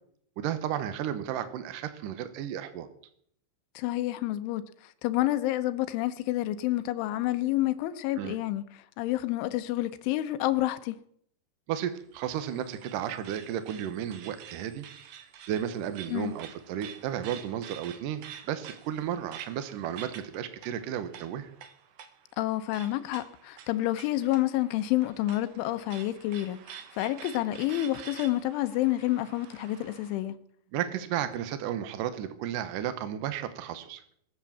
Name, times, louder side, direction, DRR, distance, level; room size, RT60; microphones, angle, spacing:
voice 1, 0.4-2.9 8.2-8.4 11.7-14.8 15.5-21.5 30.7-34.0, right 10 dB, 85° right, 1.8 m, -33 dB
voice 2, 3.8-4.7 5.0-11.0 16.1-16.3 22.4-30.4, left 15 dB, 90° left, 3.3 m, -29 dB
sound 1, 12.0-30.2, right 9 dB, 65° right, 2.0 m, -49 dB
21.5 x 7.3 x 7.2 m
omnidirectional pair, 5.3 m